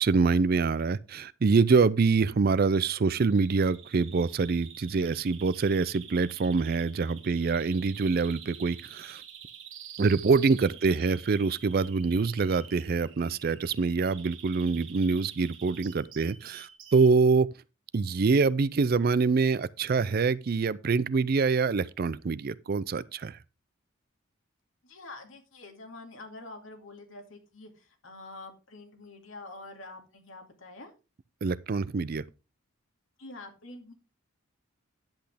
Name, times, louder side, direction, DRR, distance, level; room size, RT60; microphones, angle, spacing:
voice 1, 0.0-9.2 10.0-17.5 17.9-23.4 31.4-32.2, right 4 dB, 45° right, 0.4 m, -25 dB
Bird vocalization bird call bird song, 3.1-17.1, right 9 dB, 65° right, 1.7 m, -48 dB
voice 2, 24.8-30.9 33.2-33.9, left 2 dB, 70° left, 2.4 m, -46 dB
10.5 x 8.0 x 3.4 m
head